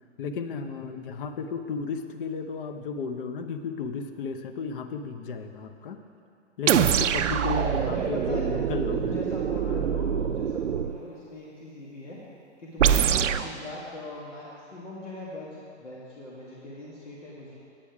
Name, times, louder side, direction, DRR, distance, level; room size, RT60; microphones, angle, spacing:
voice 1, 0.2-6.0 6.6-9.2 9.7-9.8, left 5 dB, 50° left, 8 dB, 0.8 m, -34 dB
sound 1, 6.7-11.0 12.8-13.5, right 8 dB, 85° right, 0.5 m, -24 dB
voice 2, 7.9-8.5 8.9-12.2 12.6-17.6, left 1 dB, 80° left, -6 dB, 2.0 m, -40 dB
8.9 x 8.8 x 4.8 m, 2.5 s
hypercardioid pair, 130°, 36 cm